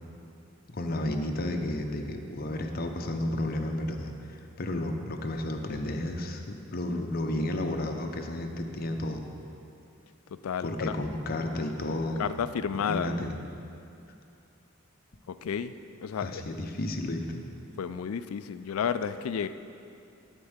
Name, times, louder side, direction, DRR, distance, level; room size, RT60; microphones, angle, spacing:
voice 1, 0.7-9.2 10.6-12.3 12.7-13.3 16.2-17.4, left 1 dB, 45° left, 4 dB, 0.8 m, -32 dB
voice 2, 10.4-11.0 12.2-13.2 15.3-15.7 16.0-16.4 17.8-19.5, left 7 dB, 85° left, 12 dB, 0.4 m, -31 dB
12.0 x 4.6 x 7.9 m, 2.6 s
head